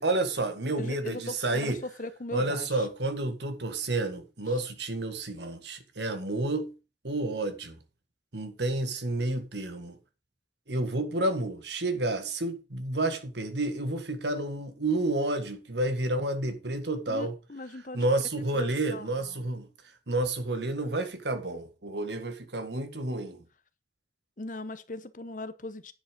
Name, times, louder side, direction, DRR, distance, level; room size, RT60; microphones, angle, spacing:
voice 1, 0.0-1.8 2.3-6.7 7.0-7.8 8.3-10.0 10.7-17.3 17.9-19.7 20.1-23.4, right 2 dB, 75° right, 1.8 m, -30 dB
voice 2, 0.8-2.9 4.5-4.6 17.1-18.0 18.5-19.5 24.4-25.9, left 2 dB, 45° left, 0.9 m, -39 dB
9.8 x 7.9 x 5.2 m
head